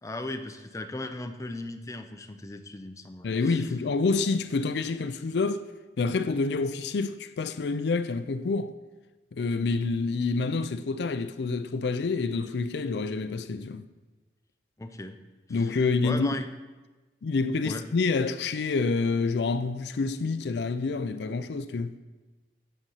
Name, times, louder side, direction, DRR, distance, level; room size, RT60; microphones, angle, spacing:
voice 1, 0.0-3.6 14.8-15.2 15.5-15.7 16.0-16.5 17.6-17.8, left 2 dB, 20° left, 0.6 m, -37 dB
voice 2, 3.2-5.6 6.0-8.7 9.3-13.9 15.5-16.4 17.2-21.9, left 4 dB, 70° left, 0.4 m, -27 dB
9.0 x 7.9 x 5.6 m
head